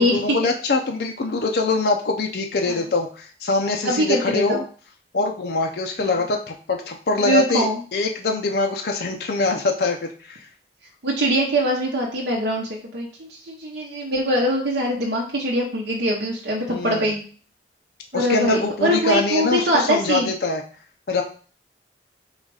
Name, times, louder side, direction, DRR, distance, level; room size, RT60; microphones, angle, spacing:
voice 1, 0.0-4.6 5.1-7.7 7.9-10.4 16.7-17.1 18.1-20.6 21.1-21.2, left 3 dB, 60° left, 2 dB, 0.5 m, -23 dB
voice 2, 3.8-4.6 7.2-7.8 11.0-17.2 18.1-20.3, equal, 75° right, -3 dB, 0.8 m, -22 dB
3.9 x 2.4 x 4.7 m, 0.41 s
head